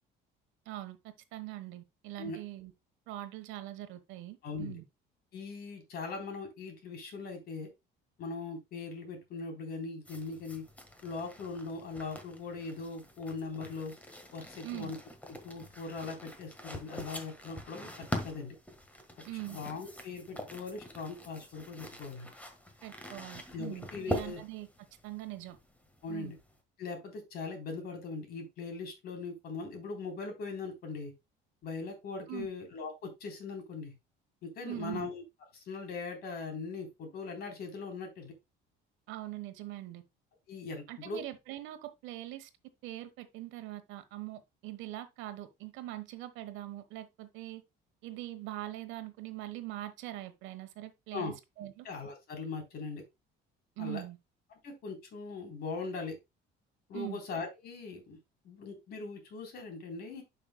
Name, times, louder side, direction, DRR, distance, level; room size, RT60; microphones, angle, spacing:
voice 1, 0.6-1.0 1.3-2.7 3.1-4.8 14.6-14.9 19.2-19.6 22.8-24.7 25.0-25.6 26.1-26.3 32.3-32.5 34.6-35.1 39.1-40.0 40.9-42.5 42.8-47.6 48.0-51.9 53.8-54.2 56.9-57.2, right 15 dB, 80° right, 1.2 m, -42 dB
voice 2, 4.4-4.8 5.3-7.7 8.2-10.6 11.0-13.9 14.3-15.0 15.3-18.6 19.3-22.3 23.5-24.4 26.0-26.4 26.8-31.1 31.6-33.9 34.4-35.2 35.5-38.3 40.5-41.2 51.1-51.3 51.8-53.0 53.8-54.0 54.6-56.1 56.9-58.2 58.4-60.2, left 4 dB, 55° left, 3.6 m, -40 dB
sound 1, 10.0-26.6, left 1 dB, 5° left, 1.5 m, -44 dB
11.0 x 5.8 x 2.2 m
cardioid pair, 145°, 20 cm